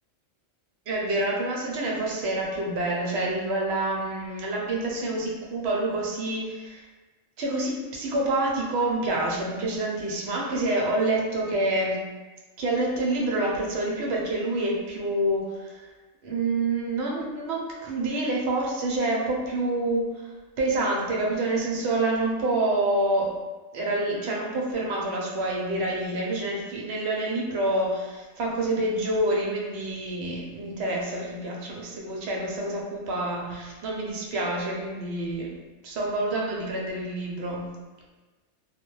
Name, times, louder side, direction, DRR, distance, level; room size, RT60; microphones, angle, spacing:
voice 1, 0.9-6.8 7.4-12.0 12.6-15.9 16.2-20.3 20.6-23.3 23.7-35.5 35.8-37.7, right 2 dB, 65° right, -2 dB, 0.8 m, -27 dB
2.2 x 2.1 x 3.0 m, 1.2 s
omnidirectional pair, 1.3 m